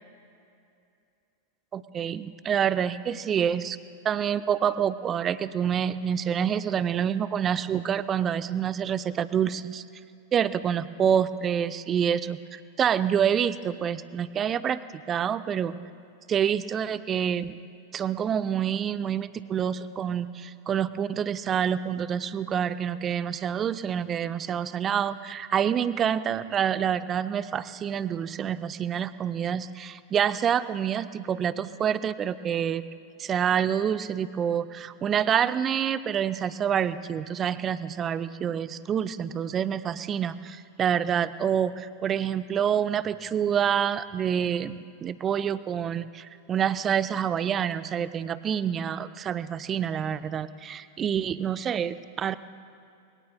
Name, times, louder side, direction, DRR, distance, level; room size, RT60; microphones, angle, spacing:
voice 1, 1.7-3.8 4.0-9.8 10.3-15.7 16.3-17.6 17.9-32.8 33.2-52.4, right 8 dB, 25° right, 14 dB, 0.5 m, -27 dB
27.0 x 22.0 x 2.2 m, 2.5 s
figure-of-eight pair, 90°, 0 cm